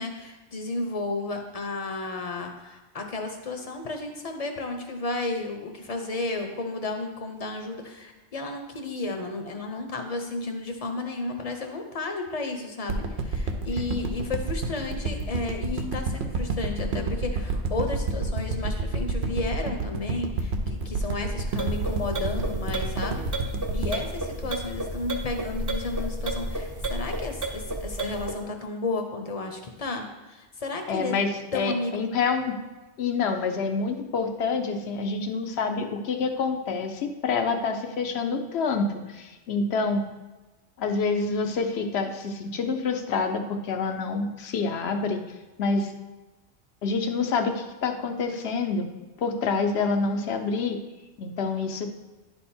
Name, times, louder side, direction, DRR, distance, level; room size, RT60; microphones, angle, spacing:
voice 1, 0.0-23.2 23.7-31.1 31.5-32.0, left 3 dB, 35° left, 4 dB, 0.8 m, -33 dB
sound 1, 12.9-25.2 25.6-25.7, right 3 dB, 70° right, 1.0 m, -29 dB
sound 2, 21.5-28.4, right 1 dB, 25° right, 0.5 m, -32 dB
voice 2, 30.9-31.3 31.5-32.6 33.0-40.0 40.8-45.2 45.6-45.9 46.8-48.9 49.2-50.8 51.2-51.9, left 4 dB, 65° left, 6 dB, 0.9 m, -27 dB
10.5 x 3.5 x 4.3 m, 1.1 s
omnidirectional pair, 1.2 m